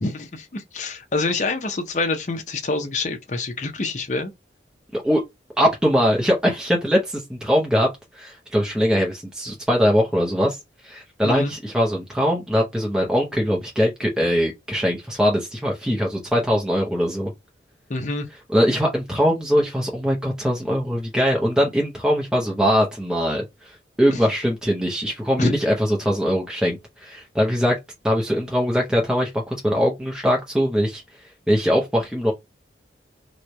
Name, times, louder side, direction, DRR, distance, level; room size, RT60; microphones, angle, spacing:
voice 1, 0.0-4.3 11.2-11.5 17.9-18.3 24.1-24.2 25.4-25.5, left 3 dB, 40° left, 0.7 m, -26 dB
voice 2, 5.6-10.6 10.8-17.3 18.5-27.8 28.0-31.0 31.5-32.3, equal, 5° right, 0.7 m, -21 dB
3.1 x 2.2 x 3.9 m
head